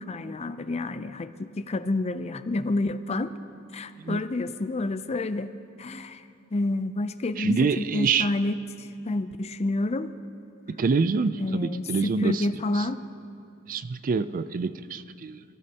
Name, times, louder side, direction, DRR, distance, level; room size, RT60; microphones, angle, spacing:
voice 1, 0.0-3.3 3.7-5.5 5.8-6.2 6.5-10.1 11.4-13.0, left 2 dB, 30° left, 12 dB, 0.4 m, -29 dB
voice 2, 7.4-8.3 10.7-12.5 12.8-12.9 13.7-15.4, right 5 dB, 40° right, 13 dB, 0.4 m, -26 dB
26.5 x 14.5 x 2.9 m, 2.5 s
head